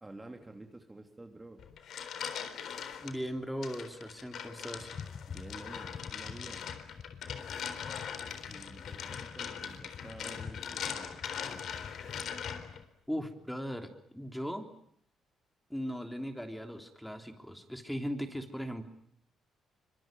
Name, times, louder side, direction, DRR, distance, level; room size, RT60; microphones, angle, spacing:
voice 1, 0.0-1.6 5.3-6.7 8.5-11.1, right 2 dB, 15° right, 4 dB, 2.9 m, -50 dB
sound 1, 1.6-3.1 3.6-12.8, left 8 dB, 70° left, 3.9 m, -41 dB
voice 2, 3.0-4.9 13.1-14.7 15.7-18.9, equal, ahead, 6 dB, 3.5 m, -38 dB
sound 2, 4.8-12.8, left 6 dB, 45° left, 1.1 m, -47 dB
25.0 x 24.0 x 9.2 m, 0.67 s
cardioid pair, 90°, 0 cm